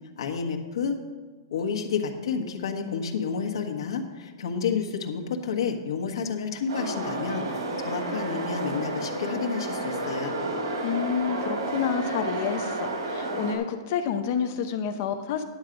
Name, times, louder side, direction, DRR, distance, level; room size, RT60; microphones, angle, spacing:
voice 1, 0.2-1.0 1.5-7.4 7.8-10.4, left 6 dB, 70° left, 3 dB, 1.4 m, -30 dB
sound 1, 6.7-13.6, right 2 dB, 70° right, 2.7 m, -31 dB
voice 2, 10.8-15.4, left 7 dB, 30° left, 8 dB, 0.6 m, -29 dB
10.5 x 7.2 x 5.2 m, 1.4 s
hypercardioid pair, 180°, 3 cm